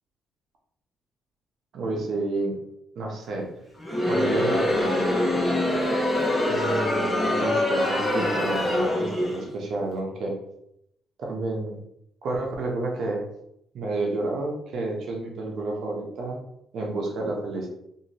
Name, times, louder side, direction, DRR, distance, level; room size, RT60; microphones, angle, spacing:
voice 1, 1.7-2.6 3.0-3.5 4.0-5.1 6.5-10.4 11.2-11.8 12.2-13.2 13.7-16.4 16.7-17.7, right 2 dB, 70° right, 0 dB, 0.8 m, -30 dB
Crowd, 3.8-9.5, left 1 dB, 10° left, 0.9 m, -24 dB
2.7 x 2.5 x 3.0 m, 0.77 s
cardioid pair, 90°, 0 cm